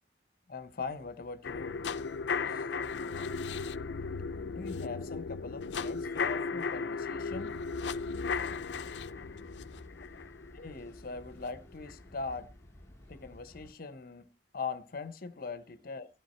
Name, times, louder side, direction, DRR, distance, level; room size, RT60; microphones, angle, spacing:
voice 1, 0.5-1.8 2.4-2.5 4.4-7.6 10.5-12.5 13.1-14.3 14.5-16.1, left 4 dB, 55° left, 0.8 m, -41 dB
sound 1, 1.4-11.5 11.9-12.0, left 5 dB, 75° left, 0.5 m, -36 dB
voice 2, 2.5-3.3 6.0-6.4 8.0-8.5 8.8-10.2 15.5-16.1, right 2 dB, 25° right, 7.0 m, -62 dB
sound 2, 7.9-13.7, left 1 dB, 15° left, 1.2 m, -53 dB
12.5 x 11.5 x 4.3 m
head